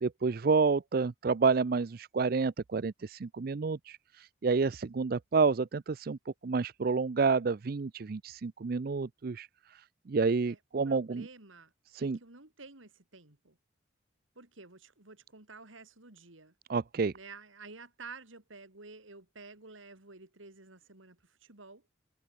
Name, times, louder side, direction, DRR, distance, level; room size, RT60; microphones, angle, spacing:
voice 1, 0.0-9.8 10.1-11.3 11.9-12.2 16.7-17.1, right 4 dB, 50° right, 0.4 m, -29 dB
voice 2, 10.9-11.7 12.0-13.6 14.3-16.5 17.1-21.8, right 4 dB, 90° right, 3.3 m, -51 dB
head